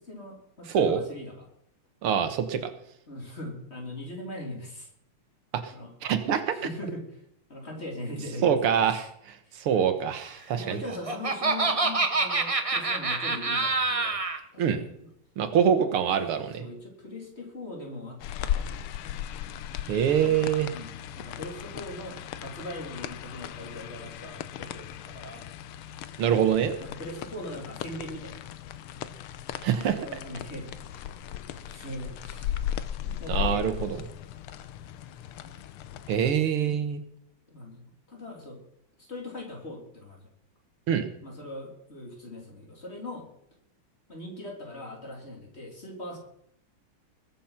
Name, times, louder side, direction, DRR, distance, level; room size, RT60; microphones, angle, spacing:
voice 1, 0.0-1.5 3.1-4.9 5.7-5.9 6.5-7.2 7.5-9.1 9.4-9.6 10.5-14.2 14.5-15.1 15.8-16.1 16.6-18.8 20.1-20.5 20.7-25.5 26.8-28.3 30.0-31.0 31.6-32.6 33.0-34.0 35.4-35.5 36.6-36.8 37.5-38.6 39.1-40.3 41.2-43.3 44.1-46.2, left 1 dB, 30° left, 0 dB, 3.6 m, -41 dB
voice 2, 0.7-1.0 2.0-2.6 6.0-6.5 8.4-10.8 14.6-14.8 15.4-16.6 19.9-20.7 26.2-26.7 29.6-30.0 33.3-33.9 36.1-37.0 40.9-41.1, right 8 dB, 80° right, 10 dB, 2.1 m, -25 dB
Laughter, 10.6-14.4, right 3 dB, 35° right, 0.5 m, -26 dB
sound 1, 18.2-36.3, left 10 dB, 85° left, 1.7 m, -37 dB
21.0 x 7.3 x 5.8 m, 0.71 s
omnidirectional pair, 2.4 m